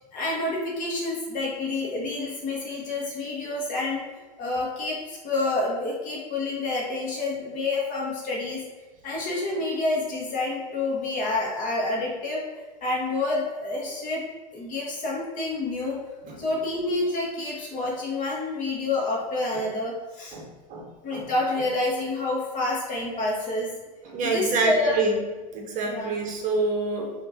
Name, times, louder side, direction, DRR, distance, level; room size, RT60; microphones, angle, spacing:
voice 1, 0.1-4.0 4.4-8.6 9.0-12.4 12.8-14.2 14.5-16.0 16.4-20.4 21.0-23.7 24.2-25.0 25.8-26.1, left 2 dB, 40° left, -3 dB, 1.5 m, -28 dB
voice 2, 20.3-21.3 24.0-25.2 25.5-27.1, right 3 dB, 40° right, 1 dB, 0.8 m, -27 dB
5.6 x 2.9 x 2.8 m, 1.2 s
hypercardioid pair, 100°, 21 cm